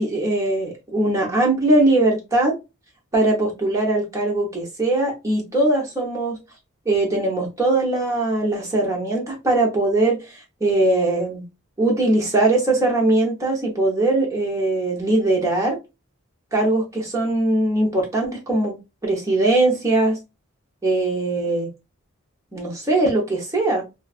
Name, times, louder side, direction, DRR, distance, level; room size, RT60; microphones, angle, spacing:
voice 1, 0.0-2.5 3.1-6.4 6.9-11.4 11.8-15.8 16.5-18.8 19.0-20.2 20.8-21.7 22.5-23.8, right 2 dB, 15° right, 0.7 m, -20 dB
2.4 x 2.3 x 2.3 m
head